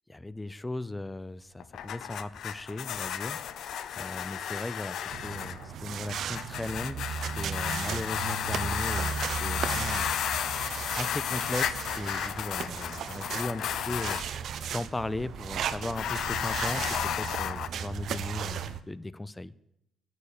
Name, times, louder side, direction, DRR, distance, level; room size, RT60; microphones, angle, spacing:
voice 1, 0.1-3.4 4.0-10.1 10.9-14.2 14.7-19.5, left 2 dB, 15° left, 18 dB, 0.6 m, -37 dB
sound 1, 1.6-14.3 15.8-17.7, left 9 dB, 75° left, 0.7 m, -33 dB
sound 2, 5.1-18.8, right 7 dB, 70° right, 0.9 m, -36 dB
9.0 x 7.2 x 8.8 m, 0.82 s
cardioid pair, 90°, 0 cm